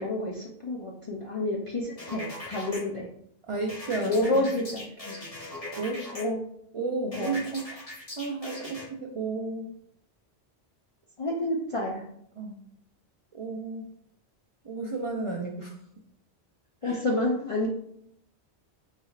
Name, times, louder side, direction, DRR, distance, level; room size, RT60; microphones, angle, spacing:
voice 1, 0.0-3.1 4.0-5.1 6.1-6.4 7.1-7.3 11.2-12.0 16.8-17.7, left 1 dB, 50° left, -2 dB, 0.4 m, -29 dB
sound 1, 2.0-2.8 3.7-6.2 7.1-8.8, left 1 dB, 35° left, 1.1 m, -40 dB
voice 2, 3.5-4.5 5.7-6.1 6.7-7.9 8.2-9.7 12.4-12.6 13.3-13.9 14.6-15.8 16.8-17.0, right 3 dB, 55° right, -1 dB, 0.3 m, -32 dB
4.1 x 3.2 x 2.3 m, 0.71 s
omnidirectional pair, 1.1 m